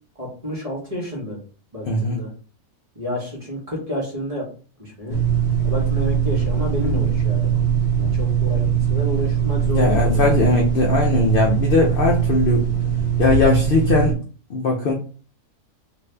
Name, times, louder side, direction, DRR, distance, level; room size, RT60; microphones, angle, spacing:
voice 1, 0.2-1.4 1.7-2.3 3.0-4.5 4.8-5.2 5.6-7.5 8.0-10.6, equal, 30° right, -3 dB, 0.8 m, -30 dB
voice 2, 1.9-2.2 9.6-12.7 13.2-14.2 14.5-14.9, left 3 dB, 70° left, 0 dB, 0.5 m, -19 dB
sound 1, 5.1-14.1, right 7 dB, 50° left, 0.8 m, -21 dB
2.6 x 2.5 x 3.2 m, 0.39 s
omnidirectional pair, 1.6 m